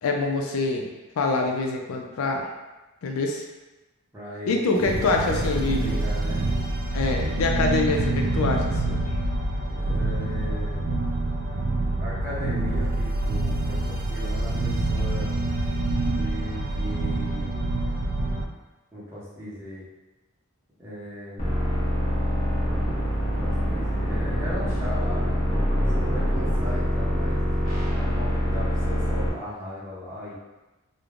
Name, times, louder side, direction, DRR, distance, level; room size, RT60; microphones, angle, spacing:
voice 1, 0.0-2.5 3.0-3.5 4.5-6.0 6.9-9.0, left 3 dB, 75° left, 2 dB, 0.4 m, -25 dB
voice 2, 4.1-5.0 5.3-6.5 9.7-10.9 12.0-15.4 16.1-17.7 18.9-19.8 20.8-21.5 23.2-25.4 25.9-27.4 27.9-30.3, left 1 dB, 10° right, -9 dB, 0.7 m, -37 dB
sound 1, 4.8-18.4, right 2 dB, 45° right, 0.3 m, -26 dB
sound 2, 21.4-29.3, equal, 40° left, 0.8 m, -25 dB
3.1 x 2.1 x 2.4 m, 1.1 s
head